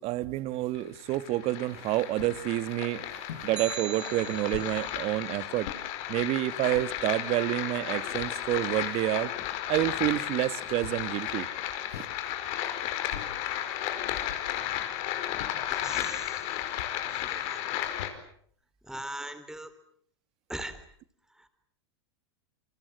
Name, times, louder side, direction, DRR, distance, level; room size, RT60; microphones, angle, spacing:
voice 1, 0.0-5.7 6.1-9.3 9.7-11.5 11.9-12.0, right 16 dB, 45° right, 1.4 m, -29 dB
sound 1, 0.7-18.1, left 12 dB, 50° left, 4.8 m, -34 dB
sound 2, 2.2-2.4 3.3-3.5 4.5-4.8 5.6-5.8 6.5-6.9 7.7-7.8 8.0-9.0 10.8-11.2 11.9-12.2 13.1-13.4 14.3-14.6 15.4-15.7 16.8-17.0 18.0-18.4, left 9 dB, 75° left, 3.5 m, -43 dB
sound 3, 3.6-4.9, right 9 dB, 85° right, 2.0 m, -40 dB
voice 2, 15.5-16.4 17.1-17.7 18.8-19.7 20.5-20.8 21.3-21.5, right 1 dB, 5° right, 4.0 m, -40 dB
28.5 x 23.5 x 7.7 m
hypercardioid pair, 105°, 14 cm